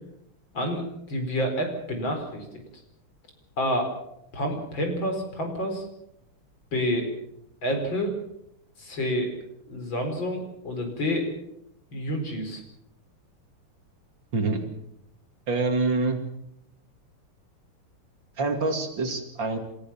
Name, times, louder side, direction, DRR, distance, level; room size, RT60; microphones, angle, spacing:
voice 1, 0.5-2.6 3.6-3.9 4.3-5.9 6.7-7.1 7.6-8.1 8.8-9.3 9.7-11.3 11.9-12.6, equal, 60° left, 4 dB, 5.2 m, -28 dB
voice 2, 14.3-14.6 15.5-16.2 18.4-19.6, right 3 dB, 55° right, 5 dB, 3.1 m, -26 dB
28.5 x 14.5 x 7.3 m, 0.80 s
omnidirectional pair, 2.4 m